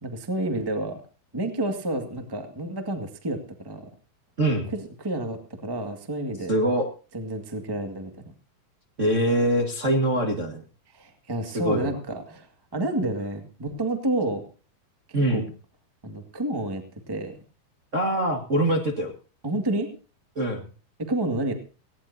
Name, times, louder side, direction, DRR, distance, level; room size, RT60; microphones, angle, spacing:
voice 1, 0.0-1.0 1.3-3.4 3.6-3.9 4.7-6.6 7.1-8.1 10.9-14.4 15.3-15.4 16.0-17.4 19.4-19.9 21.0-21.5, right 1 dB, 20° right, 5 dB, 0.5 m, -29 dB
voice 2, 4.4-4.7 6.5-6.9 9.0-10.6 11.5-11.9 15.1-15.5 17.9-19.1 20.3-20.6, right 1 dB, 40° right, 1 dB, 1.0 m, -23 dB
18.5 x 17.0 x 2.8 m, 0.37 s
omnidirectional pair, 4.4 m